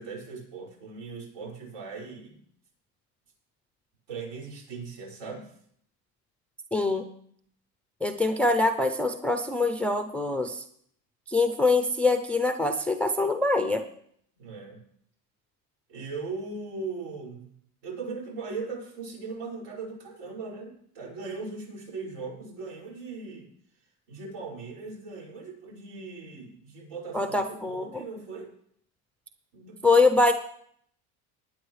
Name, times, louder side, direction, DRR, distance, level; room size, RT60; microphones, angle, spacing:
voice 1, 0.0-2.4 4.1-5.5 14.4-14.8 15.9-17.5 17.8-23.5 24.1-27.4 27.6-28.5 29.5-29.8, right 4 dB, 75° right, -2 dB, 5.9 m, -39 dB
voice 2, 6.7-7.0 8.0-10.6 11.3-13.8 27.1-28.0 29.8-30.3, left 3 dB, 5° left, 7 dB, 0.4 m, -24 dB
19.0 x 9.4 x 3.2 m, 0.66 s
cardioid pair, 145°, 41 cm